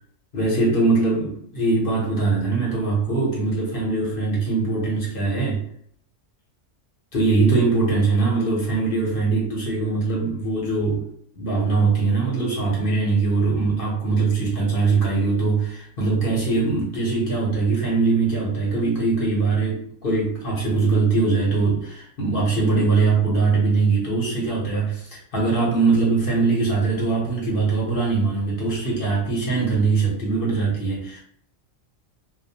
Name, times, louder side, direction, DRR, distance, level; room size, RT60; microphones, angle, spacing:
voice 1, 0.3-5.6 7.1-11.0 11.4-31.2, right 3 dB, 50° left, -4 dB, 0.9 m, -22 dB
2.3 x 2.1 x 2.7 m, 0.65 s
omnidirectional pair, 1.3 m